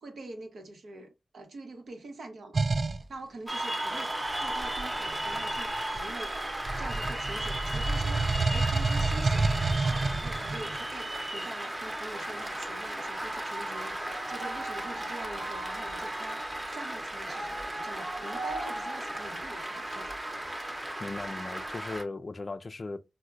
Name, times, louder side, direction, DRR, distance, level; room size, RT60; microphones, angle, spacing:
voice 1, 0.0-2.6 3.1-4.1 4.4-9.5 9.8-20.4, right 2 dB, 85° right, 0.8 m, -45 dB
sound 1, 2.5-3.0 4.3-6.2 6.6-10.8, right 3 dB, 50° right, 0.3 m, -29 dB
Cheering / Applause, 3.5-22.0, right 1 dB, 25° right, 0.8 m, -35 dB
voice 2, 21.0-23.0, left 3 dB, 50° left, 0.3 m, -37 dB
4.3 x 2.1 x 2.4 m
cardioid pair, 65°, 0 cm